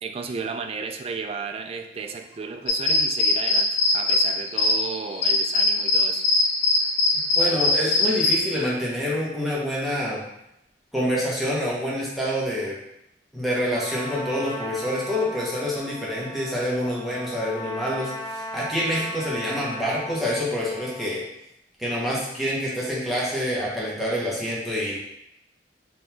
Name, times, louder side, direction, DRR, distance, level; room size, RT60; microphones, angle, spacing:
voice 1, 0.0-6.3, right 5 dB, 35° right, 6 dB, 0.3 m, -34 dB
sound 1, 2.7-8.4, left 2 dB, 80° left, 0.6 m, -21 dB
voice 2, 7.4-10.2 10.9-12.8 13.3-21.2 21.8-25.0, equal, ahead, -7 dB, 1.0 m, -27 dB
Trumpet, 13.7-21.1, left 1 dB, 30° left, 0.7 m, -37 dB
3.8 x 2.9 x 3.4 m, 0.80 s
head